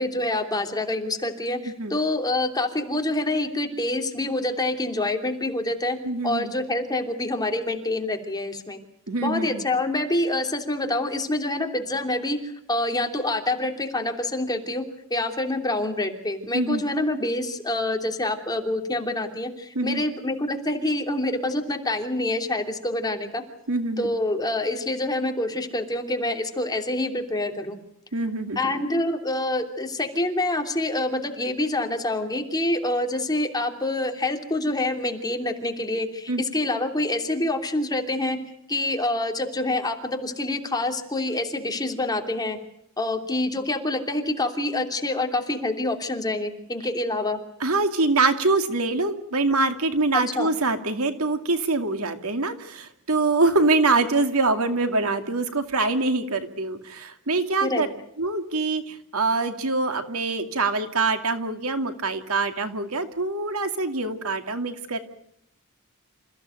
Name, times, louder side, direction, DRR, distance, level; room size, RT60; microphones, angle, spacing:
voice 1, 0.0-6.0 6.2-8.8 9.2-14.8 15.1-23.4 24.0-27.8 28.6-38.4 38.7-42.6 43.0-47.4 50.1-50.5 57.6-57.9, left 2 dB, 20° left, 4 dB, 3.0 m, -26 dB
voice 2, 6.0-6.5 9.1-9.6 16.5-16.8 19.7-20.0 23.7-24.1 28.1-28.8 36.3-36.4 47.6-57.9 58.2-65.0, right 3 dB, 75° right, 7 dB, 2.5 m, -24 dB
28.0 x 15.5 x 9.2 m, 0.74 s
head